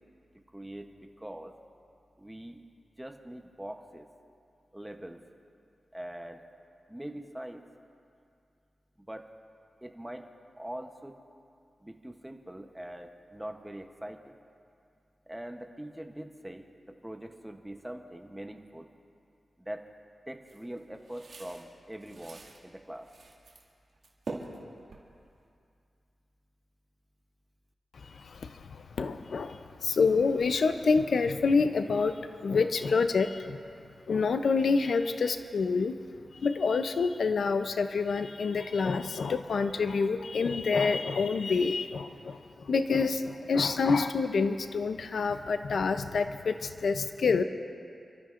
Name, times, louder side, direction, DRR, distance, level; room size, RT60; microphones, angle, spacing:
voice 1, 0.5-1.5 2.2-2.6 3.0-4.1 4.7-5.2 5.9-6.4 6.9-7.6 9.0-9.3 9.8-10.3 10.6-11.2 11.8-14.4 15.3-18.9 19.6-19.9 20.3-23.1, right 1 dB, 5° right, 4 dB, 0.8 m, -43 dB
sound 1, 20.5-22.6 23.0-23.7 24.0-25.5, right 3 dB, 65° right, 2.0 m, -44 dB
voice 2, 29.0-33.6 34.1-36.0 36.4-42.4 42.7-47.4, left 4 dB, 70° left, 9 dB, 0.5 m, -27 dB
30.0 x 13.0 x 2.5 m, 2.5 s
wide cardioid pair, 150°, 0 cm